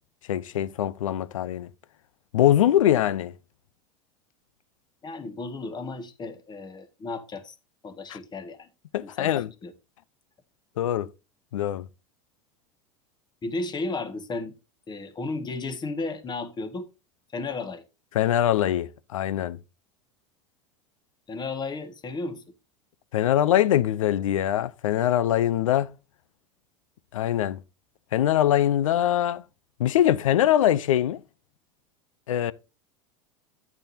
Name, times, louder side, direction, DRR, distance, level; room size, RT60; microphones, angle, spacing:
voice 1, 0.3-1.7 2.3-3.3 8.1-8.2 8.9-9.5 10.8-11.1 11.5-11.8 18.1-19.6 23.1-25.9 27.1-27.6 28.1-29.4 29.8-31.2 32.3-32.5, left 11 dB, 80° left, 0.7 m, -23 dB
voice 2, 5.0-7.5 7.8-8.7 9.0-9.3 9.6-9.7 13.4-14.5 14.9-16.9 17.3-17.8 21.3-22.4, left 3 dB, 25° left, 1.9 m, -34 dB
9.8 x 8.8 x 2.8 m
hypercardioid pair, 90°, 16 cm